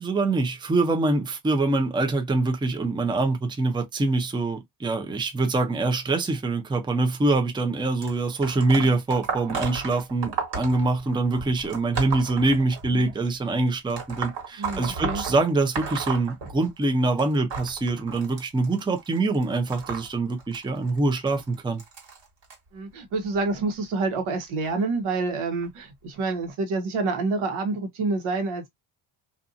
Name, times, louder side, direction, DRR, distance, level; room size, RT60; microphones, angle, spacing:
voice 1, 0.0-21.8, right 2 dB, 10° right, 0.5 m, -24 dB
sound 1, 8.0-13.1 13.9-16.9 17.2-22.5 23.3-23.6 24.6-24.7 25.6-25.7 26.4-26.5, right 5 dB, 60° right, 1.5 m, -34 dB
voice 2, 14.6-15.2 22.7-28.7, right 3 dB, 75° right, 1.1 m, -28 dB
2.6 x 2.5 x 2.5 m
cardioid pair, 100°, 49 cm